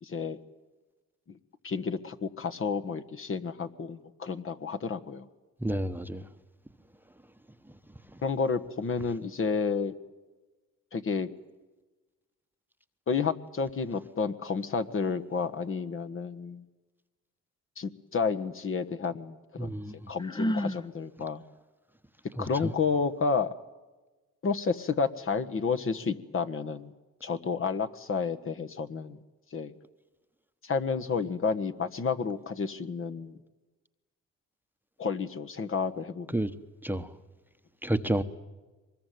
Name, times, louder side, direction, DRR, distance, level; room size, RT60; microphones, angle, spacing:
voice 1, 0.0-0.4 1.6-5.3 8.2-9.9 10.9-11.3 13.1-16.6 17.8-19.7 20.1-21.4 22.4-23.5 24.4-26.9 27.2-29.2 29.5-29.7 30.6-33.4 35.0-36.3, left 5 dB, 45° left, 1.5 m, -31 dB
voice 2, 5.6-6.3 8.1-8.2 19.6-20.0 22.4-22.7 36.3-36.5 36.8-37.1 37.8-38.2, right 1 dB, 5° right, 1.1 m, -30 dB
Sigh, 20.2-20.8, equal, 15° left, 0.9 m, -29 dB
24.0 x 21.5 x 9.4 m
cardioid pair, 90°, 30 cm